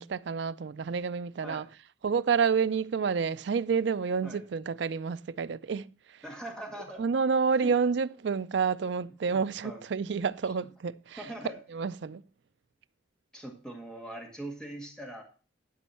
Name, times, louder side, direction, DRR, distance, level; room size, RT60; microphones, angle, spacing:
voice 1, 0.0-1.6 2.0-5.9 7.0-11.2 11.7-12.2, right 5 dB, 65° right, 0.4 m, -29 dB
voice 2, 6.2-7.0 7.6-7.8 9.2-9.8 11.2-11.6 13.3-15.2, right 1 dB, 5° left, 1.8 m, -41 dB
11.0 x 5.3 x 5.7 m
head